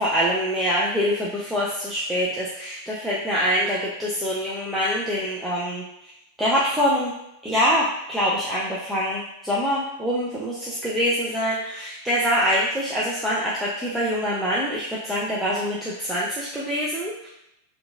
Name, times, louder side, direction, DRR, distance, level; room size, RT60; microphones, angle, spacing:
voice 1, 0.0-5.8 6.4-7.1 7.4-17.3, equal, 5° right, -7 dB, 0.5 m, -24 dB
2.8 x 2.4 x 2.3 m, 0.83 s
figure-of-eight pair, 90°, 0 cm